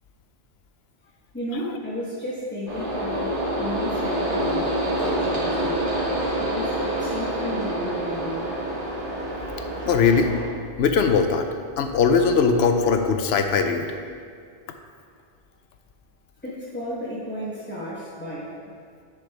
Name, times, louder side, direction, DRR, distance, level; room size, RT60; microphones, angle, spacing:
voice 1, 1.3-5.8 6.4-8.4 16.4-18.5, left 1 dB, 10° left, -8 dB, 1.0 m, -33 dB
sound 1, 2.7-10.4, right 1 dB, 55° right, 1.9 m, -27 dB
voice 2, 9.9-10.3 10.8-11.5 11.8-13.9, left 5 dB, 80° left, 6 dB, 0.9 m, -20 dB
10.0 x 4.9 x 3.3 m, 2.2 s
omnidirectional pair, 1.1 m